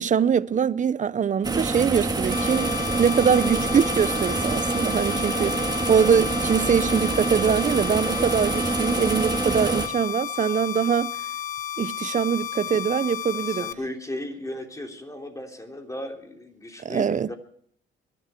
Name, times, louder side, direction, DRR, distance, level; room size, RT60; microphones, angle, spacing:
voice 1, 0.0-2.7 3.0-5.6 5.9-11.1 11.8-13.7 16.8-17.3, right 7 dB, 40° right, 0.6 m, -23 dB
sound 1, 1.4-9.9, right 3 dB, 20° right, 2.0 m, -26 dB
sound 2, 2.3-13.7, left 10 dB, 45° left, 0.9 m, -33 dB
voice 2, 5.3-5.8 13.3-17.3, left 1 dB, 15° left, 3.4 m, -36 dB
23.0 x 11.5 x 4.5 m
cardioid pair, 90°, 20 cm